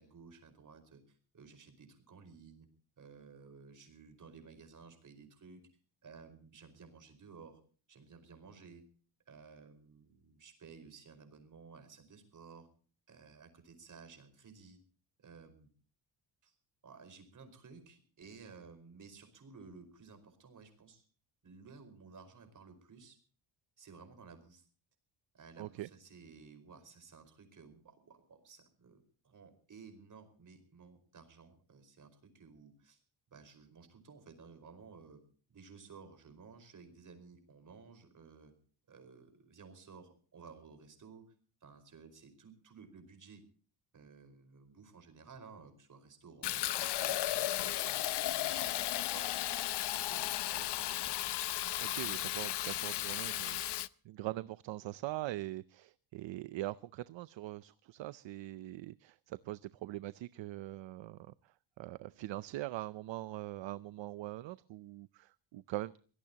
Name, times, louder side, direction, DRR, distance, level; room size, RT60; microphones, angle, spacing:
voice 1, 0.0-2.7 3.0-5.7 6.0-7.6 7.9-8.8 9.3-12.7 13.1-14.8 15.2-15.7 16.4-16.5 16.8-21.1 21.4-23.2 23.8-24.6 25.3-33.0 33.3-35.2 35.5-38.5 38.9-41.3 41.6-43.4 43.9-49.3 49.6-51.2, right 5 dB, 40° right, 4.8 m, -55 dB
voice 2, 25.6-25.9 51.8-66.0, right 16 dB, 65° right, 0.6 m, -42 dB
Fill (with liquid), 46.4-53.9, left 14 dB, 55° left, 0.7 m, -35 dB
24.5 x 17.5 x 2.9 m
cardioid pair, 145°, 48 cm